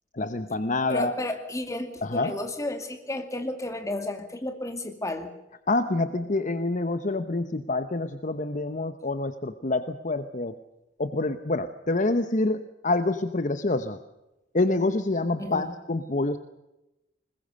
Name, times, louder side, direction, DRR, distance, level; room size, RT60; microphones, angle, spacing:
voice 1, 0.1-1.1 2.0-2.3 5.7-10.6 11.0-14.0 14.5-16.4, left 2 dB, 40° left, 10 dB, 0.9 m, -27 dB
voice 2, 0.9-5.3 15.4-15.7, left 1 dB, 15° left, 7 dB, 2.3 m, -32 dB
21.0 x 20.5 x 6.5 m, 0.94 s
head